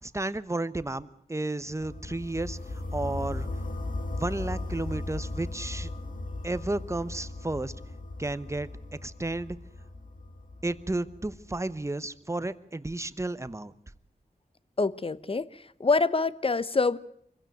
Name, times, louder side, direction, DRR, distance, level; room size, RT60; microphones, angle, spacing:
voice 1, 0.0-2.6 2.9-3.5 4.2-5.9 6.4-7.7 8.2-8.7 9.0-9.6 10.6-13.7, right 2 dB, 20° right, 14 dB, 1.0 m, -32 dB
sound 1, 1.8-11.7, left 2 dB, 60° left, 2.0 m, -37 dB
voice 2, 14.8-17.0, left 4 dB, 35° left, 17 dB, 0.9 m, -26 dB
24.5 x 15.5 x 9.2 m, 0.69 s
wide cardioid pair, 90°, 16 cm